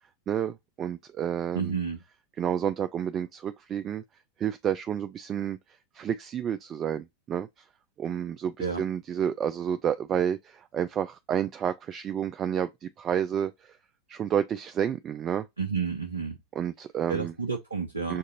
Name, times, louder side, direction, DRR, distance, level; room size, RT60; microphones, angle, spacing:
voice 1, 0.3-1.8 2.4-4.0 4.4-5.6 5.9-7.7 8.0-13.8 14.1-15.5 16.6-17.3 18.1-18.2, right 9 dB, 25° right, 0.3 m, -30 dB
voice 2, 1.5-2.0 8.6-8.8 15.6-16.4 17.1-18.2, right 5 dB, 80° right, 0.7 m, -30 dB
6.4 x 2.5 x 2.6 m
figure-of-eight pair, 90°, 0 cm